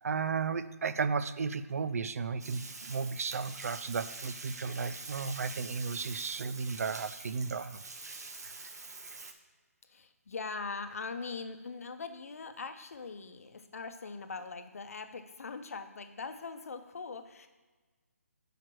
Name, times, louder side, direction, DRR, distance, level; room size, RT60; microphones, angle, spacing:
voice 1, 0.0-7.8, right 5 dB, 65° right, 14 dB, 0.4 m, -34 dB
Bathtub (filling or washing), 2.4-9.3, right 3 dB, 80° right, 0.9 m, -45 dB
voice 2, 9.8-17.5, left 4 dB, 60° left, 8 dB, 0.7 m, -41 dB
5.0 x 4.5 x 6.1 m, 1.3 s
hypercardioid pair, 165°, 9 cm